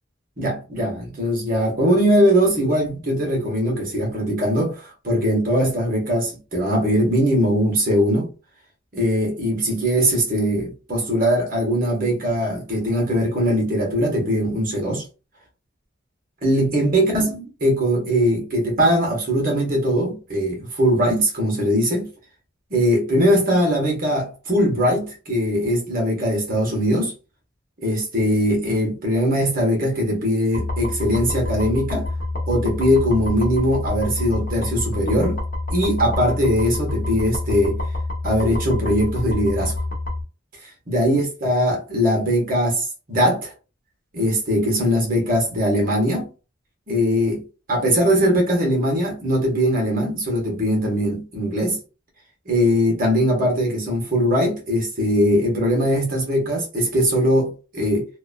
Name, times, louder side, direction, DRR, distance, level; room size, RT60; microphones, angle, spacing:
voice 1, 0.4-8.3 8.9-15.0 16.4-22.1 22.7-27.1 27.8-32.1 32.5-35.4 35.7-37.8 38.2-39.7 40.9-43.5 44.1-46.3 46.9-51.8 52.5-58.1, equal, 45° right, 1.2 m, -21 dB
sound 1, 30.5-40.2, left 2 dB, 45° left, 1.0 m, -27 dB
2.8 x 2.6 x 2.2 m
head